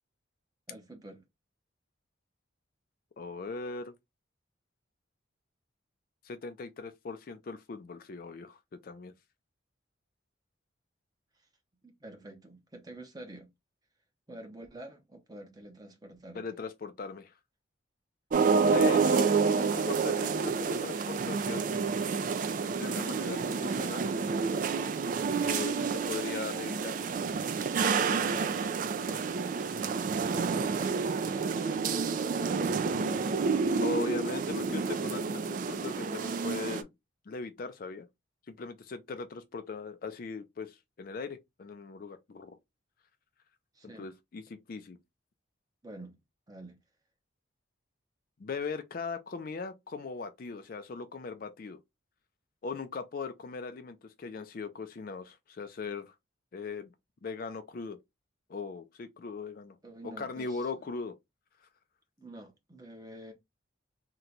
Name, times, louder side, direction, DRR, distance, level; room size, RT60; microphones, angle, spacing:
voice 1, 0.7-1.2 11.8-13.5 14.3-16.4 30.3-34.6 43.7-44.1 45.8-46.2 46.5-46.8 59.8-60.8 62.2-63.3, right 1 dB, 20° right, 0.7 m, -48 dB
voice 2, 3.2-3.9 6.2-8.6 8.8-9.1 16.3-17.3 18.7-21.7 22.7-24.1 25.4-27.0 28.1-28.5 33.8-36.9 37.3-38.1 38.5-42.6 43.8-45.0 48.4-51.8 52.6-56.1 56.5-56.9 57.2-58.0 58.5-59.8 60.2-61.1, left 4 dB, 45° left, 0.4 m, -39 dB
sound 1, 18.3-36.8, right 5 dB, 40° right, 0.3 m, -29 dB
2.9 x 2.2 x 3.8 m
head